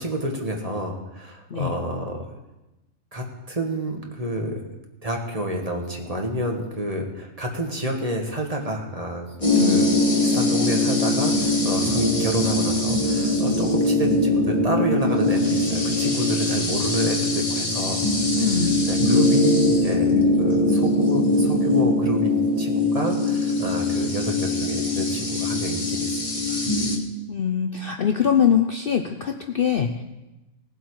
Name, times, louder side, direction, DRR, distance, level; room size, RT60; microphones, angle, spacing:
voice 1, 0.0-2.2 3.1-4.6 5.0-9.3 9.6-18.0 18.3-26.6, right 1 dB, 25° right, 1 dB, 1.5 m, -29 dB
sound 1, 9.4-27.0, left 2 dB, 25° left, 1.7 m, -22 dB
voice 2, 9.5-9.9 18.4-18.8 27.3-30.0, left 8 dB, 50° left, 5 dB, 0.7 m, -23 dB
19.0 x 7.8 x 4.7 m, 1.0 s
omnidirectional pair, 1.5 m